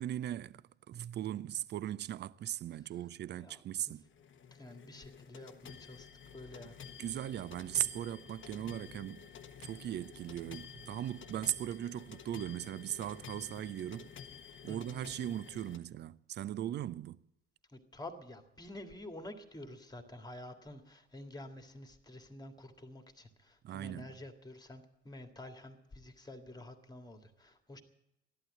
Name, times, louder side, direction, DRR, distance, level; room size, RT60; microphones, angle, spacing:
voice 1, 0.0-4.0 7.0-9.3 9.6-14.1 14.6-17.2 23.6-24.1, right 12 dB, 30° right, 0.5 m, -38 dB
sound 1, 4.0-15.8, left 7 dB, 35° left, 1.0 m, -51 dB
voice 2, 4.5-6.1 6.3-6.8 14.7-15.0 17.7-27.8, left 1 dB, 10° left, 1.9 m, -49 dB
14.5 x 11.5 x 7.8 m
figure-of-eight pair, 60°, 36 cm